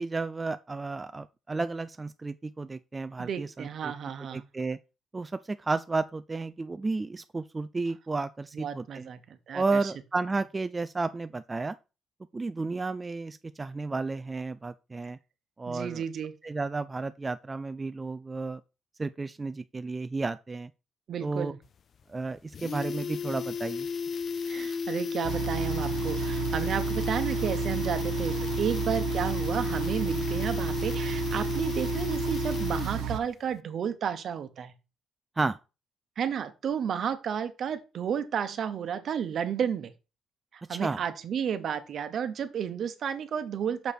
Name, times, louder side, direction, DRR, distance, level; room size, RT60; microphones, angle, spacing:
voice 1, 0.0-3.9 4.3-4.8 5.1-9.1 9.5-11.8 12.3-15.2 15.6-16.0 16.4-18.6 19.0-20.7 21.2-21.5 22.1-23.9 35.4-35.6 40.7-41.0, right 3 dB, 25° right, 0.4 m, -32 dB
voice 2, 3.2-4.4 8.5-9.2 9.5-9.9 15.7-16.3 21.1-21.6 24.4-34.7 36.2-39.9 40.5-43.9, right 8 dB, 60° right, 1.0 m, -32 dB
sound 1, 21.6-21.7 22.0-22.1 22.4-33.2 33.5-33.6, left 5 dB, 55° left, 0.4 m, -33 dB
sound 2, 25.2-33.2, right 10 dB, 85° right, 0.7 m, -32 dB
6.5 x 5.0 x 4.4 m
cardioid pair, 90°, 0 cm